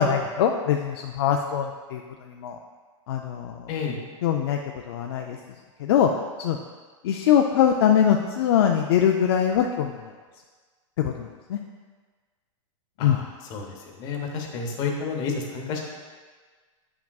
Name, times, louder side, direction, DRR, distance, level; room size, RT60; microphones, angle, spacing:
voice 1, 0.0-2.6 3.1-3.7 4.2-4.6 4.9-5.4 5.8-6.1 6.4-6.6 7.0-10.1 11.0-11.6 13.0-13.2, left 9 dB, 45° left, 2 dB, 0.4 m, -22 dB
voice 2, 3.7-4.0 13.0-13.2 13.5-15.8, left 5 dB, 25° left, 1 dB, 0.8 m, -30 dB
9.0 x 5.9 x 2.3 m, 1.5 s
supercardioid pair, 170°, 17 cm